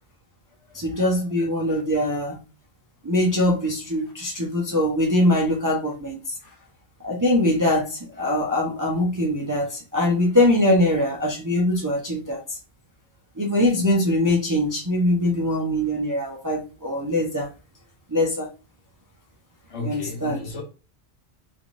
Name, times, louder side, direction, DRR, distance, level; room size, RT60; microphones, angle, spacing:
voice 1, 0.7-2.4 3.0-6.2 7.0-12.6 13.4-17.5 18.1-18.5 19.8-20.4, left 1 dB, 30° right, 0.4 m, -22 dB
voice 2, 19.7-20.6, left 3 dB, 80° left, 1.3 m, -35 dB
3.3 x 2.7 x 2.5 m
omnidirectional pair, 1.2 m